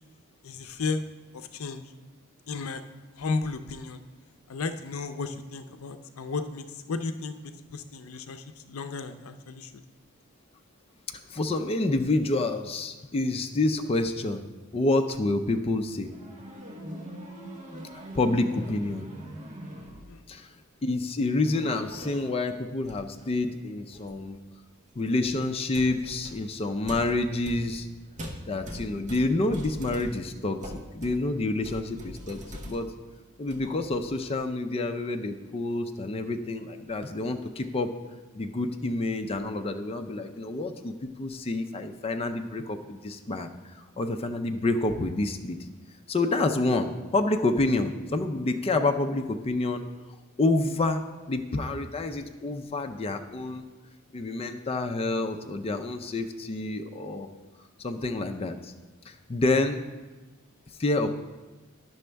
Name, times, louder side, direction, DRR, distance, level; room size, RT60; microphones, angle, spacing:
voice 1, 0.4-1.0 1.3-1.8 2.5-2.8 3.2-4.0 4.5-9.7 20.1-20.2, left 4 dB, 80° left, 9 dB, 0.5 m, -34 dB
voice 2, 11.3-14.5 14.7-16.1 17.9-19.1 20.3-20.5 20.8-24.4 25.0-27.9 28.5-32.9 33.4-37.9 38.3-45.6 46.1-49.8 50.4-53.6 54.1-57.3 57.8-58.7 59.1-59.8 60.8-61.1, left 2 dB, 30° left, 5 dB, 0.4 m, -28 dB
sound 1, 16.0-20.3 21.4-22.4 22.8-23.3 23.9-24.2 25.0-25.2 25.7-33.1 33.4-34.2, equal, 35° right, 0.9 m, -42 dB
10.5 x 6.1 x 3.4 m, 1.2 s
head